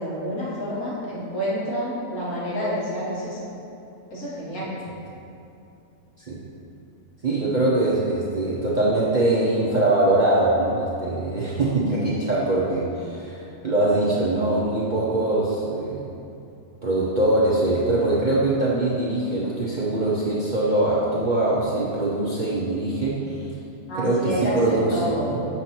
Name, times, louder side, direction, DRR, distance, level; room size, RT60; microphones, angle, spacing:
voice 1, 0.0-3.4 4.1-4.8 23.9-25.3, equal, 65° left, -8 dB, 1.9 m, -28 dB
voice 2, 7.2-16.1 16.8-23.5 23.9-25.5, right 2 dB, 50° right, -7 dB, 0.5 m, -22 dB
7.0 x 2.8 x 5.8 m, 2.7 s
omnidirectional pair, 1.7 m